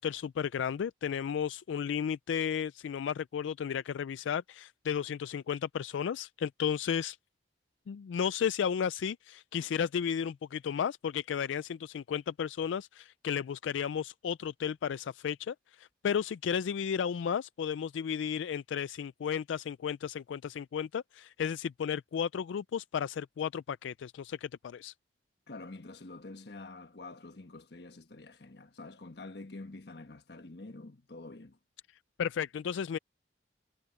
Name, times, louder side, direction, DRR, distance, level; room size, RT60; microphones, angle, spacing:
voice 1, 0.0-7.2 7.9-24.9 32.2-33.0, left 7 dB, 85° left, 0.3 m, -33 dB
voice 2, 25.5-31.6, left 2 dB, 65° left, 1.3 m, -47 dB
head